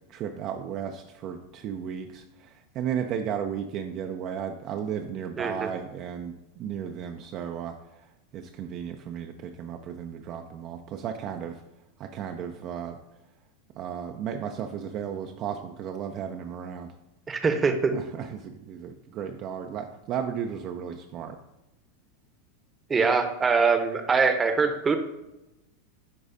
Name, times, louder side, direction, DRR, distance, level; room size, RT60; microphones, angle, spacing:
voice 1, 0.1-11.6 12.0-13.0 13.7-16.9 17.9-21.4, right 8 dB, 45° right, 5 dB, 0.5 m, -34 dB
voice 2, 5.4-5.7 17.3-17.9 22.9-25.0, right 5 dB, 20° right, 7 dB, 0.8 m, -23 dB
9.9 x 3.9 x 2.6 m, 0.95 s
figure-of-eight pair, 85°, 0 cm